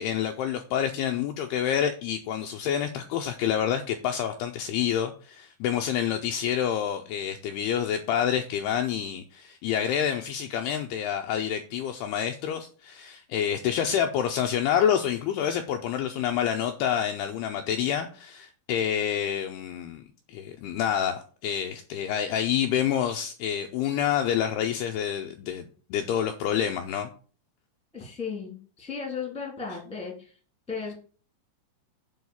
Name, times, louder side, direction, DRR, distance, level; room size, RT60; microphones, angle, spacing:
voice 1, 0.0-20.0 20.3-27.1, left 9 dB, 80° left, 5 dB, 2.4 m, -28 dB
voice 2, 27.9-30.4 30.7-30.9, left 5 dB, ahead, 0 dB, 1.9 m, -35 dB
8.0 x 4.6 x 7.1 m, 0.40 s
omnidirectional pair, 5.2 m